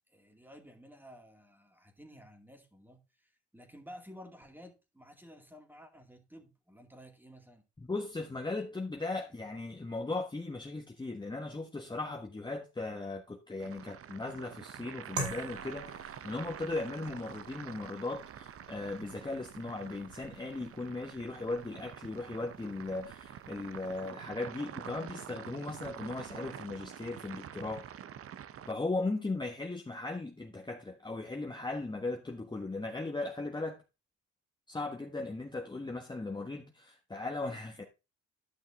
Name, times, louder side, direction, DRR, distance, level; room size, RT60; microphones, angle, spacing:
voice 1, 0.1-7.6, equal, 5° right, 2.3 m, -53 dB
voice 2, 7.8-27.9 28.7-33.8 34.7-37.8, left 2 dB, 15° left, 1.3 m, -37 dB
sound 1, 13.6-28.7, right 9 dB, 50° right, 0.7 m, -47 dB
sound 2, 15.2-24.0, right 2 dB, 70° right, 4.4 m, -47 dB
11.5 x 5.9 x 3.5 m
cardioid pair, 90°, 30 cm